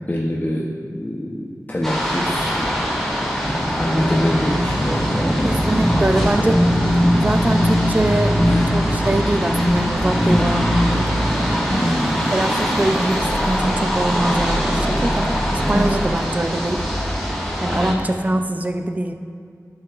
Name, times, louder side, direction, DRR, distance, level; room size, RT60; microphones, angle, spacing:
voice 1, 0.1-2.9 3.2-5.6 5.9-6.5 8.4-8.7 11.7-12.1 15.7-15.9 17.7-18.0, equal, 30° left, -4 dB, 0.8 m, -25 dB
sound 1, 1.8-17.9, equal, 5° left, 2.2 m, -24 dB
sound 2, 3.4-15.8, equal, 45° right, 1.8 m, -22 dB
voice 2, 5.4-6.6 7.2-8.4 8.7-11.1 12.3-16.8 17.6-19.1, right 1 dB, 25° right, 6 dB, 0.4 m, -23 dB
12.0 x 7.6 x 2.5 m, 2.2 s
wide cardioid pair, 60°, 6 cm